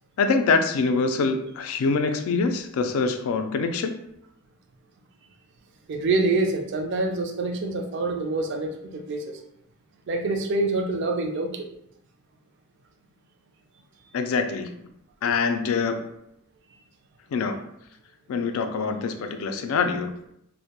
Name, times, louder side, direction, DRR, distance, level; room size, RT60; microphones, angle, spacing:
voice 1, 0.2-4.0 14.1-14.7 15.2-16.1 17.3-17.6 18.3-20.1, left 4 dB, 75° left, 7 dB, 0.3 m, -24 dB
voice 2, 5.9-9.4 10.1-11.7, right 2 dB, 55° right, 4 dB, 0.3 m, -26 dB
2.2 x 2.1 x 2.8 m, 0.76 s
head